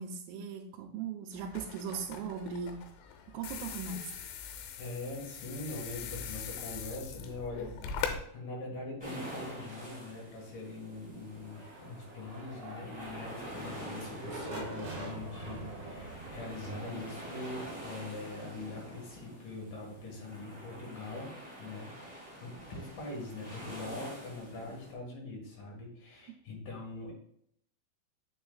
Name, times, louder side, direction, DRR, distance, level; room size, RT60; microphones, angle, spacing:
voice 1, 0.0-2.8 3.3-4.1, right 6 dB, 90° right, 1 dB, 3.2 m, -38 dB
sound 1, 1.3-8.2, left 7 dB, 90° left, 3.2 m, -41 dB
voice 2, 4.8-8.0 8.3-27.1, left 2 dB, 55° left, -2 dB, 2.5 m, -43 dB
sound 2, 9.0-24.9, equal, 5° right, 1.1 m, -47 dB
sound 3, 11.3-19.1, right 2 dB, 65° right, 1.4 m, -45 dB
7.0 x 6.9 x 2.4 m, 0.67 s
omnidirectional pair, 5.6 m